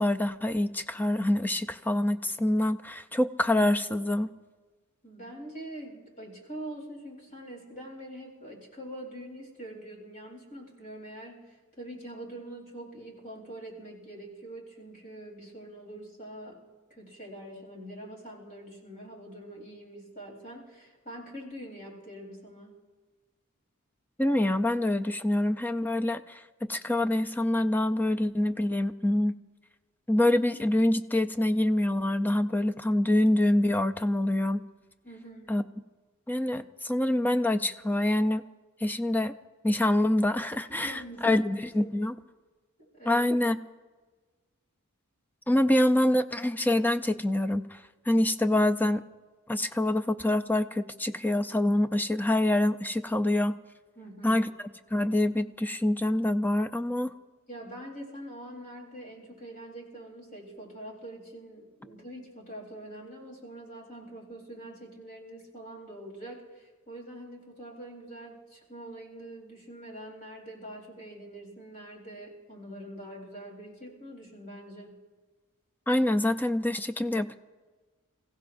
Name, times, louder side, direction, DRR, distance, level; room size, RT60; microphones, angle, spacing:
voice 1, 0.0-4.3 24.2-29.4 30.1-34.6 35.5-35.6 36.3-38.4 38.8-39.3 39.6-42.1 43.1-43.6 45.5-49.0 49.5-53.6 54.2-54.5 54.9-57.1 75.9-77.4, left 1 dB, 10° left, 10 dB, 0.5 m, -26 dB
voice 2, 5.0-16.6 16.9-22.8 35.0-35.5 40.7-41.4 41.8-42.0 42.8-43.3 54.0-54.5 57.5-75.0, right 1 dB, 40° left, -2 dB, 3.9 m, -44 dB
29.5 x 16.0 x 2.6 m, 1.3 s
head